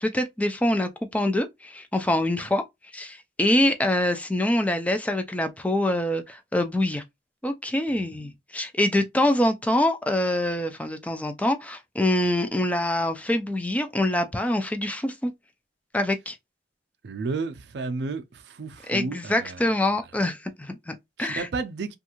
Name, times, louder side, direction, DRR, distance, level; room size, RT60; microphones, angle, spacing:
voice 1, 0.0-2.6 2.9-7.0 7.4-15.3 15.9-16.4 18.9-21.5, left 1 dB, 10° left, 0.3 m, -25 dB
voice 2, 17.0-19.6 21.2-22.0, right 4 dB, 70° right, 0.4 m, -32 dB
2.6 x 2.4 x 2.9 m
head